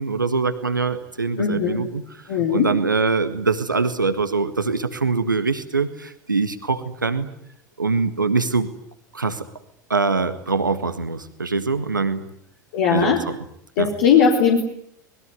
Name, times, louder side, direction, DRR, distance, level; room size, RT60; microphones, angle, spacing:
voice 1, 0.0-7.3 7.8-8.7 9.1-9.5 9.9-12.2 12.9-13.4 13.8-13.9, right 4 dB, 85° right, 9 dB, 1.6 m, -23 dB
voice 2, 1.4-1.8 2.3-2.7 12.7-13.2 13.8-14.6, left 7 dB, 55° left, 0 dB, 4.0 m, -18 dB
26.0 x 21.0 x 9.6 m, 0.72 s
figure-of-eight pair, 80°, 10 cm